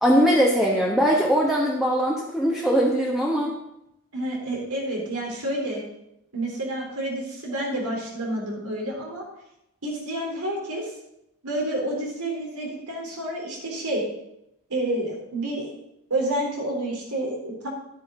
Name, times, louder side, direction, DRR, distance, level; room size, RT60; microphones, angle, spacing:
voice 1, 0.0-3.6, equal, ahead, -2 dB, 1.1 m, -21 dB
voice 2, 4.1-5.8 6.3-9.2 9.8-10.9 11.4-14.0 14.7-15.7 16.1-17.7, right 1 dB, 85° right, -1 dB, 3.6 m, -29 dB
11.0 x 9.4 x 3.9 m, 0.82 s
head